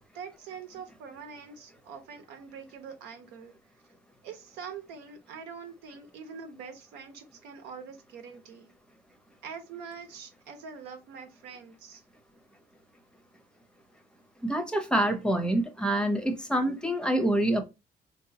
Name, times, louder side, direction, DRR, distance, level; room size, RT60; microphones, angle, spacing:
voice 1, 0.1-3.5 4.2-8.7 9.4-12.0, right 6 dB, 85° right, 0.9 m, -44 dB
voice 2, 14.4-17.6, right 1 dB, 5° left, 0.6 m, -26 dB
3.5 x 2.7 x 2.7 m
cardioid pair, 110°, 17 cm